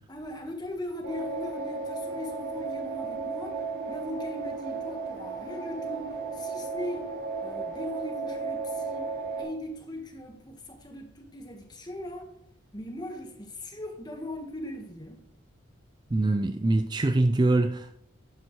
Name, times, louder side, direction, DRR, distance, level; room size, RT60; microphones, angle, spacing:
voice 1, 0.1-7.1 7.4-9.1 9.4-12.3 12.7-15.2, left 1 dB, 20° left, 1.4 m, -39 dB
sound 1, 1.0-9.4, right 4 dB, 60° right, 4.0 m, -34 dB
voice 2, 16.1-18.0, right 2 dB, 20° right, 0.3 m, -24 dB
11.5 x 9.6 x 3.1 m
head